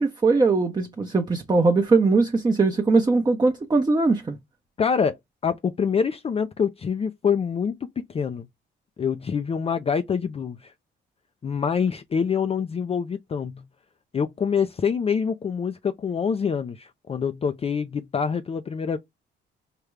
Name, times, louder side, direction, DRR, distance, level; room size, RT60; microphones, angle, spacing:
voice 1, 0.0-4.4, right 3 dB, 20° right, 0.8 m, -20 dB
voice 2, 4.8-8.5 9.0-10.7 11.4-13.7 14.1-19.0, left 6 dB, 30° left, 0.4 m, -26 dB
5.0 x 2.2 x 3.2 m
cardioid pair, 90°, 20 cm